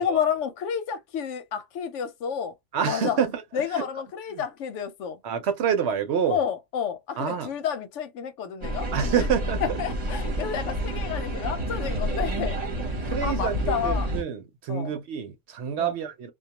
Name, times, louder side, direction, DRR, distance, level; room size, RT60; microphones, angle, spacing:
voice 1, 0.0-2.5 2.8-3.2 3.5-5.2 6.3-9.2 9.6-12.6 13.2-14.1 14.7-14.9 15.8-15.9, left 8 dB, 85° left, 1.0 m, -30 dB
voice 2, 2.7-3.8 4.3-4.4 5.2-6.4 7.2-7.5 8.9-9.8 13.0-16.3, right 7 dB, 70° right, 0.9 m, -27 dB
sound 1, 8.6-14.2, equal, 35° right, 0.9 m, -29 dB
2.2 x 2.2 x 2.8 m
omnidirectional pair, 1.2 m